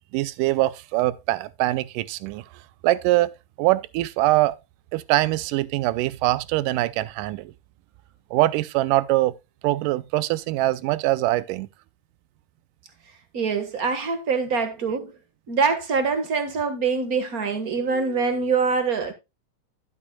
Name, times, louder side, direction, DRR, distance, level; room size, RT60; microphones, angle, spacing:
voice 1, 0.1-2.5 2.8-4.6 4.9-7.5 8.3-9.4 9.6-11.7, right 17 dB, 90° right, 2.2 m, -23 dB
voice 2, 13.3-15.1 15.5-19.1, right 5 dB, 45° right, 1.2 m, -24 dB
11.5 x 9.7 x 2.2 m
omnidirectional pair, 3.6 m